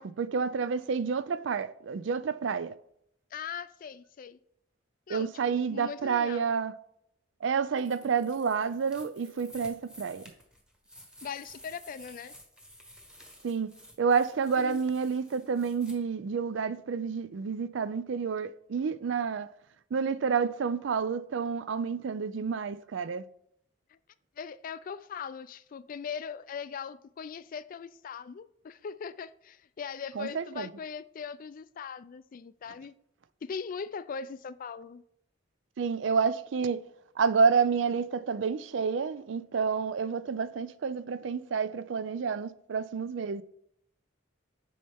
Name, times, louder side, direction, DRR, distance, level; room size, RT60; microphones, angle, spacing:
voice 1, 0.0-2.7 5.1-6.7 7.4-10.3 13.4-13.7 14.0-19.5 19.9-23.3 30.2-30.7 35.8-36.8 37.2-43.4, right 5 dB, 70° right, 0.4 m, -29 dB
voice 2, 3.3-4.4 5.1-6.4 11.2-12.3 14.6-14.8 23.9-24.0 24.4-32.9 33.4-35.0, left 6 dB, 45° left, 0.3 m, -40 dB
sound 1, 7.8-15.9, equal, 5° right, 1.2 m, -53 dB
8.5 x 5.5 x 3.5 m
head